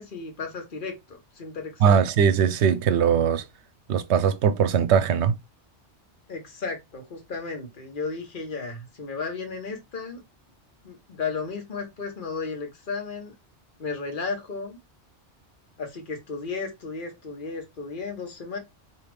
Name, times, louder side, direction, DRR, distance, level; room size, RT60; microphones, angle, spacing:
voice 1, 0.0-2.0 6.3-10.2 10.8-13.3 13.8-14.8 15.8-18.6, left 4 dB, 45° left, 1.4 m, -34 dB
voice 2, 1.8-3.4 3.9-5.3, right 7 dB, 75° right, 0.8 m, -20 dB
4.8 x 3.0 x 3.4 m
omnidirectional pair, 1.2 m